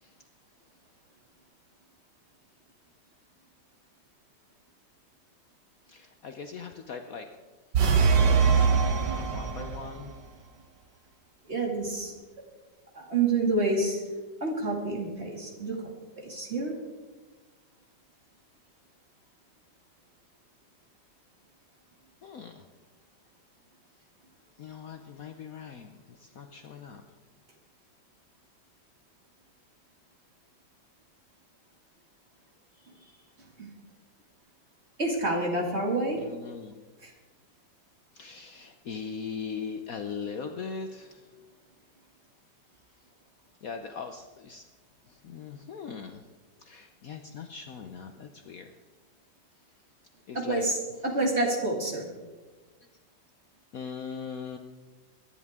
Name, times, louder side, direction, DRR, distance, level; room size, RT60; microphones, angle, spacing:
voice 1, 5.9-7.3 8.1-8.7 9.0-10.2 22.2-22.6 24.6-27.0 32.9-33.2 36.2-36.7 38.1-41.3 43.6-44.7 45.1-46.2 46.6-48.7 50.3-50.7 53.7-54.6, left 6 dB, 60° left, 6 dB, 1.0 m, -40 dB
sound 1, 7.7-10.0, right 5 dB, 75° right, 1.8 m, -22 dB
voice 2, 11.5-12.1 12.9-14.0 14.4-15.8 16.2-16.7 33.6-33.7 35.0-36.2 37.0-37.1 50.3-52.1, right 2 dB, 35° right, -1 dB, 2.6 m, -28 dB
23.5 x 10.5 x 3.6 m, 1.3 s
omnidirectional pair, 2.0 m